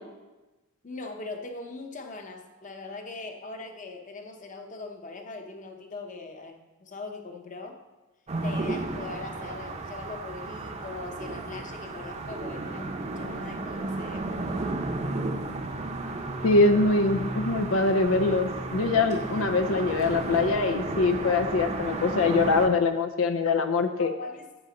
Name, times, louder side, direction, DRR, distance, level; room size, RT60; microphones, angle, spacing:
voice 1, 0.8-7.8 8.4-14.3 24.0-24.5, left 3 dB, 40° left, 4 dB, 0.9 m, -40 dB
sound 1, 8.3-22.7, right 2 dB, 35° right, 0.7 m, -33 dB
voice 2, 16.4-24.1, left 3 dB, 85° left, 7 dB, 0.5 m, -23 dB
7.9 x 6.8 x 5.2 m, 1.1 s
head